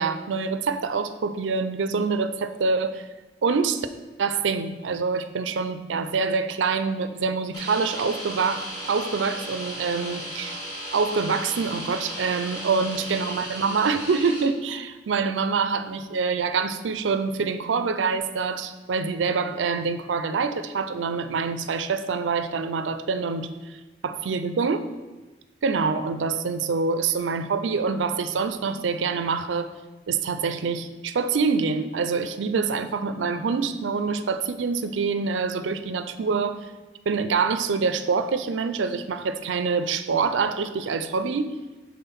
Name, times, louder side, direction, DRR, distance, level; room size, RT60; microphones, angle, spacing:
voice 1, 0.0-3.1 3.4-3.9 4.2-10.6 10.9-23.8 24.0-24.9 25.6-29.7 30.1-36.7 37.1-41.5, right 5 dB, 90° right, 11 dB, 0.4 m, -26 dB
sound 1, 7.5-14.4, equal, 25° left, 1.7 m, -36 dB
5.6 x 3.7 x 5.8 m, 1.2 s
head